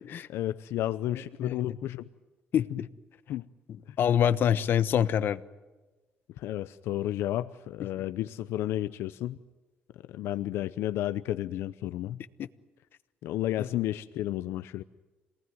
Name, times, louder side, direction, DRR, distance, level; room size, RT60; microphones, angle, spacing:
voice 1, 0.3-2.1 2.7-2.8 3.3-3.5 3.9-4.0 6.4-9.4 10.1-12.2 13.2-14.8, left 13 dB, 85° left, 13 dB, 0.7 m, -32 dB
voice 2, 2.5-2.9 4.0-5.4 13.6-13.7, left 9 dB, 60° left, 14 dB, 1.1 m, -25 dB
27.0 x 19.0 x 9.4 m, 1.2 s
cardioid pair, 125°, 4 cm